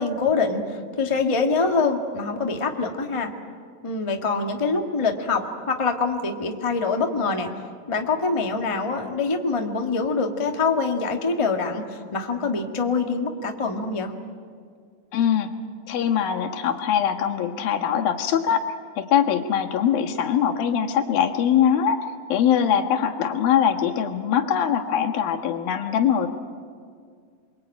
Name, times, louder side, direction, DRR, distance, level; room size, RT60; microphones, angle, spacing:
voice 1, 0.0-3.3 3.8-7.5 7.9-14.1, left 4 dB, 25° left, 3 dB, 0.6 m, -25 dB
voice 2, 15.1-15.5 15.9-18.6 19.0-26.3, left 8 dB, 85° left, 3 dB, 3.4 m, -22 dB
28.5 x 23.0 x 9.1 m, 2.1 s
omnidirectional pair, 4.1 m